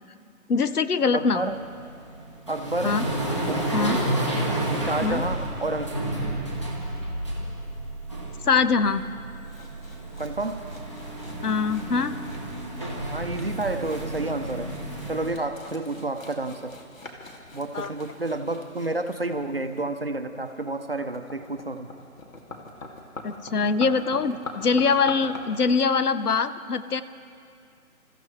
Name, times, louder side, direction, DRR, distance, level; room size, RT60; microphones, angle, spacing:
voice 1, 0.5-1.5 2.8-3.0 3.7-4.0 5.0-5.2 8.4-9.0 11.4-12.1 17.7-17.9 23.2-27.0, left 5 dB, 85° left, 12 dB, 0.9 m, -23 dB
voice 2, 1.1-1.6 2.5-3.0 3.5-4.0 4.9-6.0 10.2-10.6 13.1-14.7 15.1-16.8 17.5-21.9, right 2 dB, 40° right, 7 dB, 0.7 m, -30 dB
sound 1, 1.3-15.3, right 1 dB, 20° left, 1.2 m, -31 dB
sound 2, 9.4-25.4, left 3 dB, 60° left, 2.4 m, -44 dB
28.5 x 14.5 x 3.2 m, 2.3 s
figure-of-eight pair, 180°, 44 cm